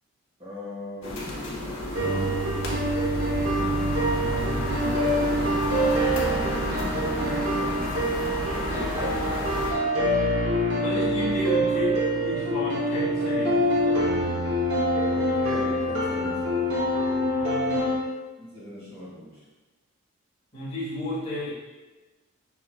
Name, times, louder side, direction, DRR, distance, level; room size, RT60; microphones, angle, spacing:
voice 1, 0.4-1.3 5.6-7.3 8.5-9.5 15.1-16.7 18.4-19.4, left 1 dB, 25° right, -7 dB, 1.4 m, -39 dB
sound 1, 1.0-9.7, left 1 dB, 60° left, 0.8 m, -31 dB
sound 2, 1.9-17.9, equal, 80° right, 0.9 m, -25 dB
voice 2, 10.8-14.5 17.4-17.9 20.5-21.5, left 1 dB, 25° left, -14 dB, 1.1 m, -32 dB
5.4 x 3.0 x 2.3 m, 1.2 s
head